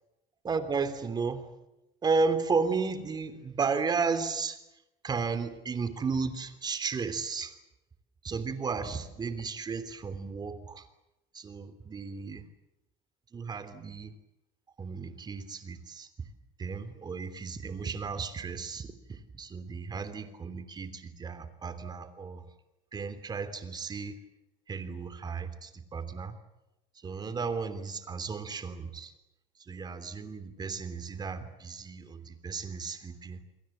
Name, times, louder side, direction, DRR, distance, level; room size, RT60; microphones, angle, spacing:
voice 1, 0.4-1.5 2.0-4.6 5.0-7.5 8.2-10.8 11.3-12.4 13.3-14.1 14.8-16.1 16.6-22.4 22.9-24.2 24.7-26.4 27.0-29.1 29.7-33.4, right 4 dB, 25° right, 11 dB, 3.2 m, -34 dB
29.0 x 22.5 x 7.5 m, 0.89 s
cardioid pair, 125°, 16 cm